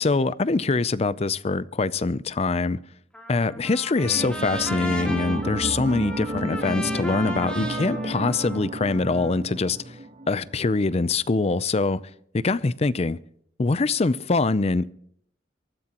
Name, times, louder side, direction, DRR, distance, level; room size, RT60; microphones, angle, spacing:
voice 1, 0.0-2.8 3.3-9.8 10.3-12.0 12.3-13.2 13.6-14.9, left 3 dB, 35° left, 0.5 m, -24 dB
Trumpet, 3.1-9.4, equal, 5° left, 2.5 m, -36 dB
sound 1, 4.0-11.1 11.3-11.4, right 2 dB, 40° right, 0.8 m, -32 dB
23.5 x 13.5 x 3.0 m
head